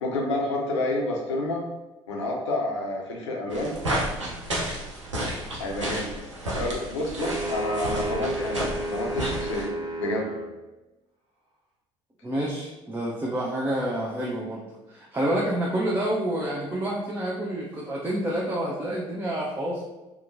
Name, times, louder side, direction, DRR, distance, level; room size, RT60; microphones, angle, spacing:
voice 1, 0.0-1.6 2.1-3.8 5.6-6.1 6.5-9.7 10.0-10.3, left 2 dB, 80° left, 0 dB, 0.6 m, -29 dB
sound 1, 3.5-9.6, right 1 dB, 90° right, 0.6 m, -32 dB
sound 2, 7.2-10.5, right 2 dB, 40° right, 0.9 m, -32 dB
voice 2, 12.2-19.9, right 1 dB, 15° right, -4 dB, 0.5 m, -28 dB
2.8 x 2.1 x 2.5 m, 1.1 s
figure-of-eight pair, 55°, 15 cm